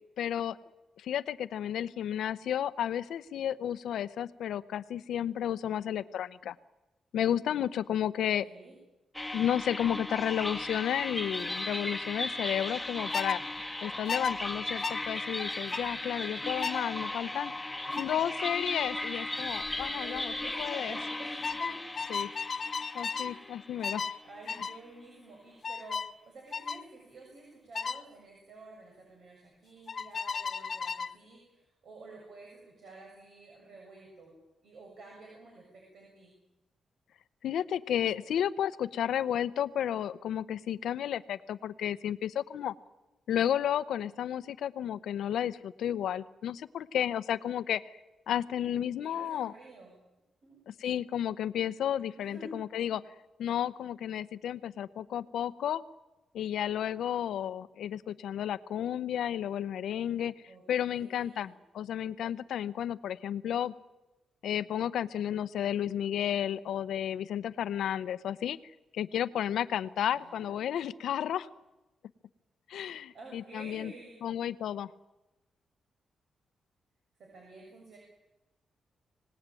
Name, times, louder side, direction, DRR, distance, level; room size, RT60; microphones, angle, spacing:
voice 1, 0.2-0.6 1.0-6.5 7.1-8.5 9.3-13.4 13.8-17.5 18.0-20.3 20.6-21.0 22.1-22.3 22.9-24.1 37.4-42.7 43.3-47.9 48.3-49.5 50.7-53.0 53.4-55.8 56.3-60.3 60.7-63.7 64.4-68.6 68.9-71.5 72.7-73.9 74.2-74.9, left 10 dB, 85° left, 15 dB, 0.8 m, -32 dB
voice 2, 8.2-8.8 19.7-21.8 23.1-23.5 23.9-26.0 26.3-34.4 34.6-36.3 48.8-50.0 50.4-50.6 52.1-52.5 60.5-61.5 70.1-70.5 73.1-74.2 77.2-78.0, right 2 dB, 60° right, -1 dB, 7.4 m, -51 dB
sound 1, 9.1-24.4, left 2 dB, 10° left, 1.6 m, -37 dB
sound 2, 13.1-13.4 14.1-14.3 14.8-15.0 15.7-15.9 16.6-16.9 18.0-18.2 19.6-19.9 20.2-20.5 21.4-23.4 23.8-24.2 24.5-24.8 25.6-26.1 26.5-26.8 27.7-28.0 29.9-31.2, left 5 dB, 40° left, 0.8 m, -34 dB
25.5 x 18.5 x 9.1 m, 1.0 s
cardioid pair, 110°, 0 cm